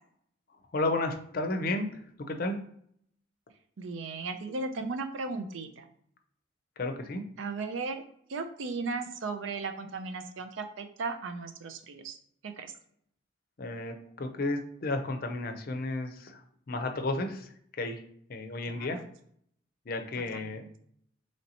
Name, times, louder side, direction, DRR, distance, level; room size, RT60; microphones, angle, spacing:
voice 1, 0.7-2.0 2.3-2.6 6.8-7.2 13.6-16.4 16.7-17.5 17.8-18.0 18.3-19.0 19.9-20.7, left 2 dB, 50° left, 6 dB, 0.5 m, -32 dB
voice 2, 3.8-5.9 7.4-8.0 8.3-12.2 12.4-12.7 18.7-19.1 20.3-20.7, right 3 dB, 80° right, 8 dB, 0.5 m, -36 dB
3.2 x 2.8 x 4.0 m, 0.67 s
head